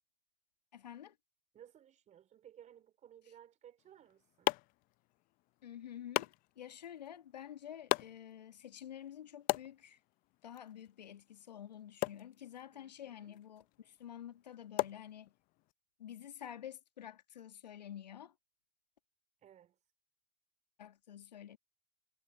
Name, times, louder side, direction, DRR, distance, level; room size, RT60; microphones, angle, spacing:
voice 1, 0.7-1.2 5.6-10.0 10.4-15.3 16.0-18.3 20.8-21.6, left 10 dB, 80° left, 1.8 m, -49 dB
voice 2, 1.5-4.6 12.7-13.4 19.4-19.8, right 10 dB, 35° right, 4.3 m, -59 dB
sound 1, 3.8-15.7, left 22 dB, 45° left, 0.5 m, -42 dB
hypercardioid pair, 90°, 21 cm